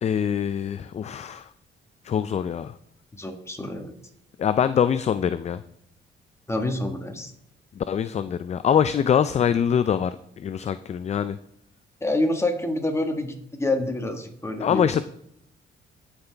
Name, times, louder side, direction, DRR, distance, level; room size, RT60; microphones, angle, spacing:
voice 1, 0.0-1.5 2.0-2.7 4.4-5.6 7.8-11.4 14.6-15.0, left 8 dB, 35° left, 13 dB, 0.4 m, -24 dB
voice 2, 3.1-3.9 6.5-7.3 12.0-14.9, left 2 dB, 15° left, 4 dB, 1.5 m, -27 dB
15.0 x 5.7 x 3.4 m, 0.73 s
cardioid pair, 90°, 20 cm